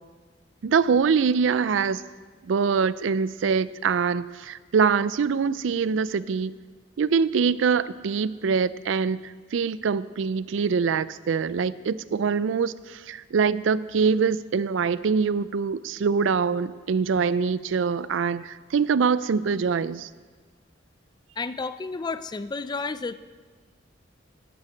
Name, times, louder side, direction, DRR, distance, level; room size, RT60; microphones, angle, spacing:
voice 1, 0.6-2.0 2.4-6.5 7.0-20.1, right 5 dB, 80° right, 17 dB, 0.4 m, -24 dB
voice 2, 21.4-23.2, left 4 dB, 20° left, 14 dB, 0.3 m, -31 dB
11.0 x 8.8 x 8.4 m, 1.5 s
head